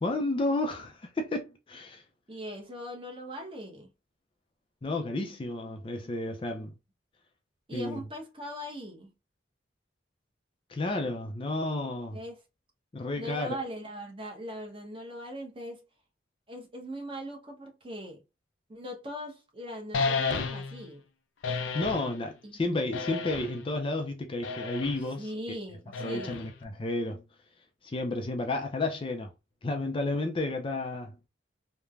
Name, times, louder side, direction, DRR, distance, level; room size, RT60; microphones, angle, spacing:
voice 1, 0.0-2.0 4.8-6.7 7.7-8.0 10.7-12.2 12.9-13.5 21.7-25.3 26.0-27.2 27.8-29.3 29.6-31.2, left 2 dB, 30° left, 0.4 m, -32 dB
voice 2, 2.3-3.9 7.7-9.1 12.1-12.4 13.2-15.8 16.5-18.2 18.7-21.0 22.4-22.5 25.2-26.5, equal, 30° right, 0.8 m, -40 dB
sound 1, 19.9-20.8 21.4-22.1 22.9-23.7 24.4-25.0 25.9-26.6, left 4 dB, 90° left, 0.5 m, -32 dB
3.1 x 2.1 x 2.4 m
head